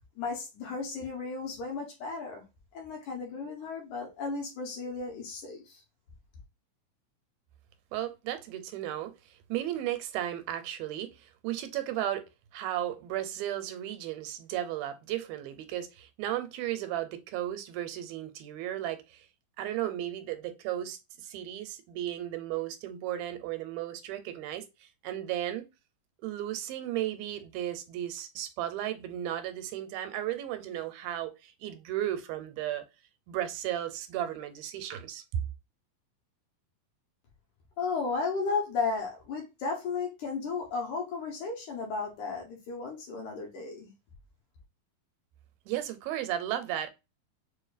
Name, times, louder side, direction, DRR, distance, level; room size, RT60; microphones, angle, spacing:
voice 1, 0.2-2.4 2.7-5.8 37.8-43.9, left 4 dB, 70° left, 2.1 m, -34 dB
voice 2, 7.9-12.3 12.5-19.3 19.6-25.7 26.2-32.8 33.3-35.4 45.7-46.9, right 12 dB, 85° right, 2.4 m, -35 dB
6.4 x 2.5 x 2.3 m
omnidirectional pair, 4.3 m